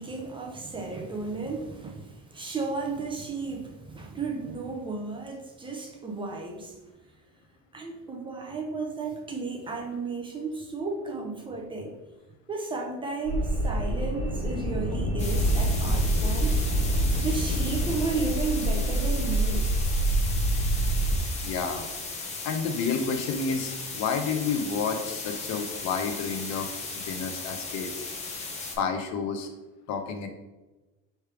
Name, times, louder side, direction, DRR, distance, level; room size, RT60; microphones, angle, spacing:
voice 1, 0.0-6.8 7.7-12.0 12.5-16.6 17.2-19.7, right 3 dB, 15° right, 1 dB, 0.5 m, -33 dB
sound 1, 13.2-21.2, right 1 dB, 50° left, 1.4 m, -26 dB
sound 2, 15.2-28.8, left 3 dB, 25° left, 0.7 m, -37 dB
voice 2, 21.4-21.9 22.4-26.7 27.0-28.0 28.8-29.5 29.9-30.3, left 5 dB, 70° left, 6 dB, 0.7 m, -30 dB
3.3 x 3.2 x 4.7 m, 1.1 s
cardioid pair, 160°, 29 cm